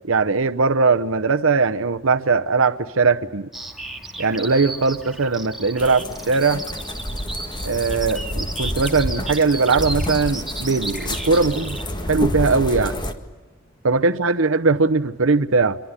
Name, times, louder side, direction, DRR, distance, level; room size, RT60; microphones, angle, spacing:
voice 1, 0.1-3.5 4.2-6.6 7.6-13.0 13.8-15.8, right 4 dB, 80° right, 9 dB, 0.9 m, -20 dB
Bird vocalization bird call bird song, 3.5-11.8, right 2 dB, ahead, 2.6 m, -34 dB
sound 1, 5.8-13.1, left 1 dB, 20° left, 1.8 m, -29 dB
26.5 x 23.0 x 9.7 m, 1.2 s
head